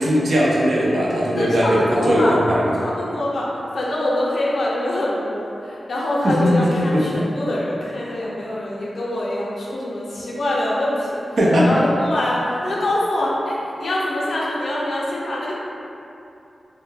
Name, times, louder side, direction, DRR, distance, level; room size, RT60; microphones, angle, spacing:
voice 1, 0.0-2.7 6.2-7.0 11.4-11.7, equal, 75° right, -5 dB, 0.5 m, -18 dB
voice 2, 1.4-2.4 2.8-3.5 3.7-11.2 11.6-15.6, left 1 dB, 70° left, -5 dB, 0.5 m, -24 dB
2.2 x 2.0 x 3.2 m, 2.7 s
wide cardioid pair, 95°, 0 cm